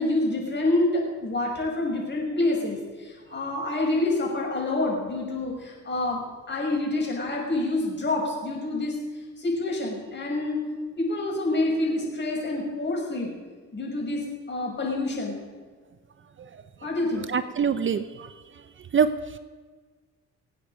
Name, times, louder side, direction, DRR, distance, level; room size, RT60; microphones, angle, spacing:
voice 1, 0.0-6.2 6.5-9.0 9.4-10.6 11.0-13.3 13.7-15.4 16.8-17.3, left 2 dB, 35° left, -1 dB, 6.4 m, -27 dB
voice 2, 17.3-18.7 18.9-19.4, right 6 dB, 40° right, 11 dB, 0.7 m, -26 dB
26.0 x 8.8 x 5.2 m, 1.4 s
cardioid pair, 90°, 30 cm